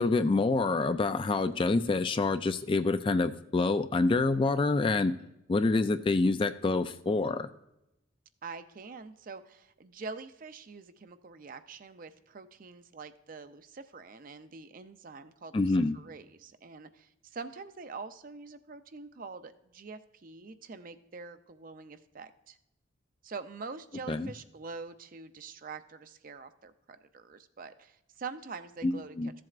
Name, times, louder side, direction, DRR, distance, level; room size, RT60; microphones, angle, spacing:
voice 1, 0.0-5.2 5.5-7.5 15.5-16.0 24.1-24.3 28.8-29.3, left 3 dB, 25° left, 11 dB, 0.3 m, -27 dB
voice 2, 8.4-22.6 23.2-29.2, right 4 dB, 45° right, 10 dB, 0.5 m, -45 dB
14.5 x 7.6 x 2.4 m, 0.88 s
head